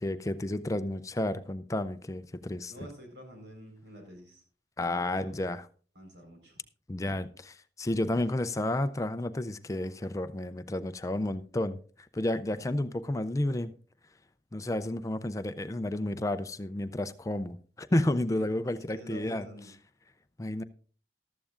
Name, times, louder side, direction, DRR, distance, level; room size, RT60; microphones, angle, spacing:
voice 1, 0.0-2.7 4.8-5.6 6.9-11.8 12.1-13.7 14.5-19.5 20.4-20.6, left 1 dB, 20° left, 0.4 m, -31 dB
voice 2, 2.7-4.4 4.8-5.3 5.9-6.6 18.3-18.4 18.7-19.7, equal, 80° right, 4.4 m, -47 dB
14.5 x 13.0 x 2.5 m
head